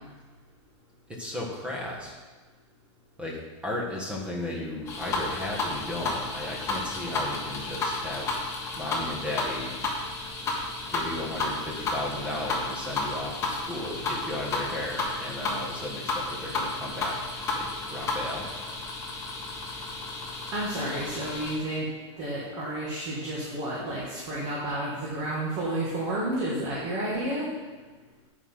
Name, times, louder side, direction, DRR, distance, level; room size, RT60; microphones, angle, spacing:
voice 1, 1.1-2.2 3.2-8.4 8.7-9.7 10.9-18.7, left 1 dB, 5° right, -3 dB, 1.4 m, -35 dB
sound 1, 4.9-21.6, left 3 dB, 20° left, 1.3 m, -32 dB
voice 2, 20.5-21.9 22.2-27.5, right 1 dB, 30° right, -6 dB, 1.9 m, -31 dB
8.3 x 5.0 x 5.7 m, 1.3 s
supercardioid pair, 160°, 16 cm